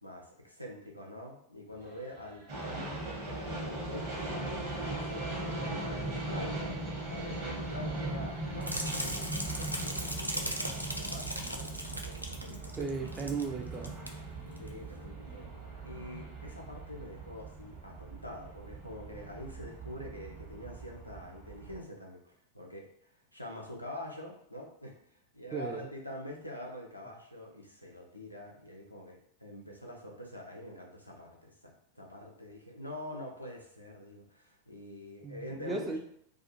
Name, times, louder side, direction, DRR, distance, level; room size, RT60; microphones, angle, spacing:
voice 1, 0.0-4.3 4.8-12.6 14.6-15.5 15.8-22.2 22.5-36.0, left 1 dB, 90° left, -1 dB, 0.6 m, -45 dB
sound 1, 1.7-15.6, right 2 dB, 70° right, 0.8 m, -57 dB
sound 2, 2.5-21.8, right 2 dB, 45° right, 1.0 m, -39 dB
sound 3, 8.6-13.5 13.7-14.1 14.6-14.7, equal, 90° right, 0.3 m, -37 dB
voice 2, 12.8-13.9 25.5-25.9 35.2-36.0, right 4 dB, 20° right, 3 dB, 0.4 m, -36 dB
2.4 x 2.4 x 2.7 m, 0.71 s
figure-of-eight pair, 90°, 0 cm